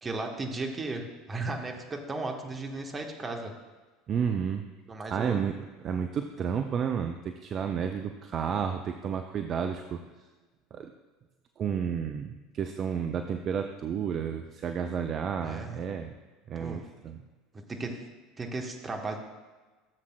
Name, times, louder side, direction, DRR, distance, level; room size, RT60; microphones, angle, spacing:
voice 1, 0.0-1.0 1.3-3.5 4.9-5.4 15.4-15.8 16.6-16.8 17.5-18.0 18.4-19.2, right 3 dB, 25° right, 3 dB, 1.2 m, -35 dB
voice 2, 4.1-4.6 5.1-10.0 10.7-10.9 11.6-16.1 16.5-17.2, right 7 dB, 40° right, 6 dB, 0.5 m, -31 dB
15.0 x 7.3 x 2.2 m, 1.3 s
figure-of-eight pair, 70°, 0 cm